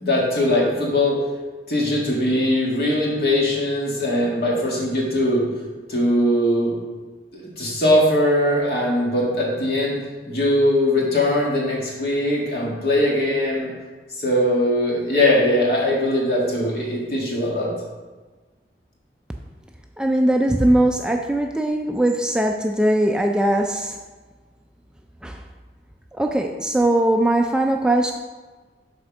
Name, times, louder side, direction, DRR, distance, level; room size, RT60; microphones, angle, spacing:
voice 1, 0.0-1.2 1.7-5.5 5.9-6.7 7.3-10.0 10.3-13.7 14.2-17.7, left 1 dB, 60° left, -4 dB, 2.0 m, -20 dB
voice 2, 20.0-24.0 25.2-25.4 26.1-28.1, right 1 dB, 5° right, 3 dB, 0.3 m, -20 dB
6.2 x 4.3 x 6.0 m, 1.3 s
head